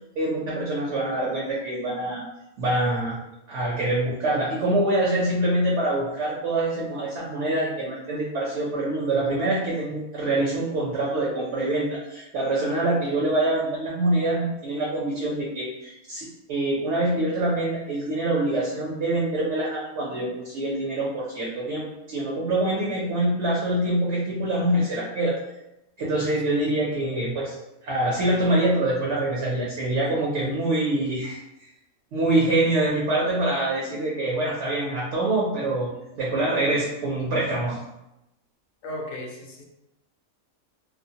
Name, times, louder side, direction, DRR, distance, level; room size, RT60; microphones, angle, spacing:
voice 1, 0.2-2.2 2.6-3.2 3.5-25.3 26.0-27.5 27.8-31.4 32.1-37.8, right 1 dB, 65° right, -5 dB, 0.8 m, -25 dB
voice 2, 38.8-39.6, left 1 dB, 65° left, 0 dB, 0.8 m, -36 dB
2.5 x 2.1 x 2.7 m, 0.90 s
omnidirectional pair, 1.5 m